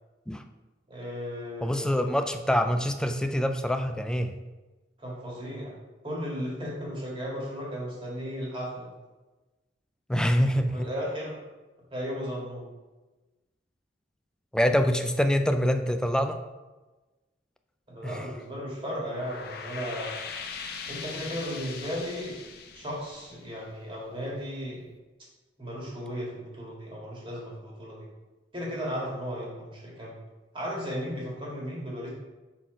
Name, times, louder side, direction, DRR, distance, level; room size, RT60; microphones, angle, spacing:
voice 1, 0.9-2.2 5.0-5.7 6.0-8.9 10.7-11.4 11.9-12.6 17.9-20.1 20.9-22.4 22.7-24.8 25.6-28.1 28.5-30.2 30.5-32.1, equal, 30° right, -4 dB, 1.9 m, -35 dB
voice 2, 1.6-4.3 10.1-10.9 14.5-16.4 18.0-18.2, equal, 5° left, 7 dB, 0.3 m, -25 dB
sound 1, 18.9-24.1, left 5 dB, 60° left, 0.7 m, -41 dB
5.9 x 4.2 x 4.9 m, 1.2 s
head